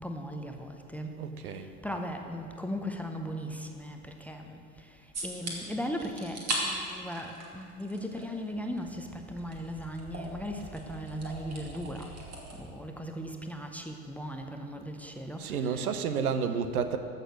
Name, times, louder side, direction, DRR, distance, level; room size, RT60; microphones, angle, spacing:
voice 1, 0.0-1.1 1.8-4.6 5.2-12.1 12.6-15.9, equal, 5° left, 4 dB, 0.6 m, -38 dB
voice 2, 1.2-1.7 15.4-17.0, right 6 dB, 70° right, 9 dB, 1.0 m, -30 dB
sound 1, 5.1-5.5 6.0-6.6 6.9-8.2 8.5-12.6, right 2 dB, 35° right, 2.6 m, -39 dB
14.0 x 6.7 x 6.3 m, 2.5 s
figure-of-eight pair, 80°, 46 cm